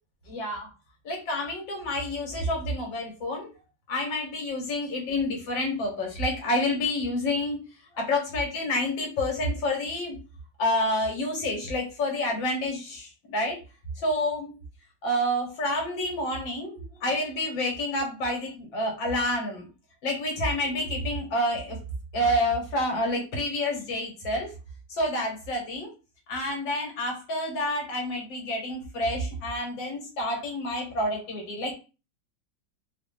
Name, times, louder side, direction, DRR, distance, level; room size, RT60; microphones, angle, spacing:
voice 1, 0.3-0.7 1.1-3.5 3.9-7.6 8.0-10.2 10.6-13.6 14.0-14.5 15.0-19.7 20.0-21.8 22.1-24.5 24.9-25.9 26.3-31.7, left 1 dB, 90° left, 1 dB, 2.0 m, -28 dB
3.9 x 2.4 x 3.3 m, 0.31 s
omnidirectional pair, 2.0 m